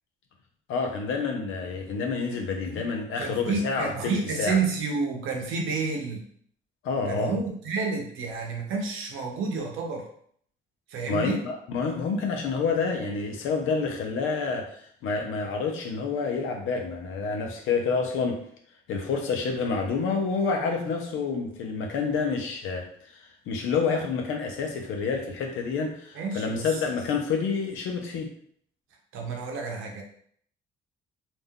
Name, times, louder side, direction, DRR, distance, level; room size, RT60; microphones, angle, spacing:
voice 1, 0.7-4.1 4.4-4.5 6.8-7.4 11.1-18.4 18.9-22.9 23.5-28.3, left 4 dB, 90° left, 3 dB, 0.6 m, -28 dB
voice 2, 3.2-6.2 7.1-10.1 10.9-11.4 26.1-26.7 29.1-30.0, right 4 dB, 90° right, 1 dB, 0.7 m, -30 dB
2.5 x 2.2 x 3.5 m, 0.62 s
cardioid pair, 90°, 20 cm